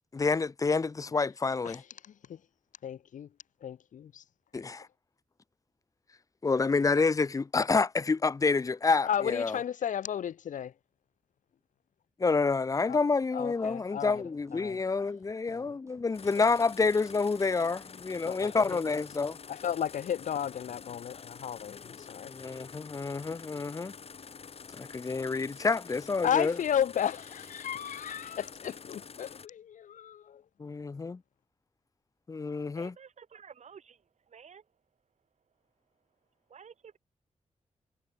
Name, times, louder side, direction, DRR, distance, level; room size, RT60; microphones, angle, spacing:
voice 1, 0.1-1.8 4.5-4.9 6.4-9.6 12.2-19.4 22.3-23.9 24.7-26.6 30.6-31.2 32.3-32.9, left 4 dB, 25° left, 0.9 m, -28 dB
voice 2, 2.8-3.3 3.6-4.2 9.0-10.7 12.9-13.0 13.3-14.8 15.5-15.8 18.3-18.8 19.5-22.3 26.2-30.4, left 9 dB, 80° left, 0.8 m, -34 dB
sound 1, 13.0-20.9, right 3 dB, 20° right, 6.4 m, -65 dB
sound 2, 16.1-29.5, left 6 dB, 50° left, 4.1 m, -48 dB
voice 3, 32.7-34.7 36.5-37.0, right 7 dB, 65° right, 7.5 m, -52 dB
wide cardioid pair, 180°, 13 cm